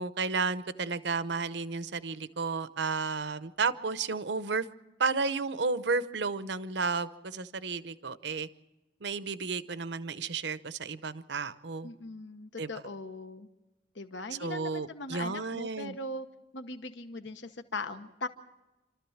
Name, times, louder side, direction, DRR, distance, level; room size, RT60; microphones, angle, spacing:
voice 1, 0.0-4.7 5.0-8.5 9.0-11.9 12.6-12.7 14.4-16.0, right 4 dB, 65° right, 14 dB, 0.8 m, -32 dB
voice 2, 11.8-13.5 13.9-16.3 16.5-18.3, left 2 dB, 75° left, 9 dB, 1.0 m, -40 dB
28.5 x 13.5 x 7.2 m, 1.0 s
head